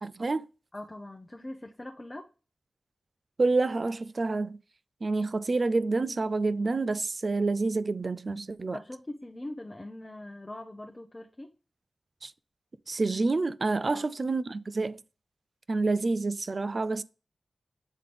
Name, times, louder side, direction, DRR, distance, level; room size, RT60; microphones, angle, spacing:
voice 1, 0.0-0.5 3.4-4.6 5.0-8.8 12.2-12.3 12.9-15.0 15.7-17.0, right 3 dB, 50° right, 0.4 m, -28 dB
voice 2, 0.7-2.3 8.7-11.5 13.9-14.1, left 1 dB, 25° left, 0.8 m, -42 dB
8.2 x 3.9 x 3.3 m
wide cardioid pair, 75°, 0 cm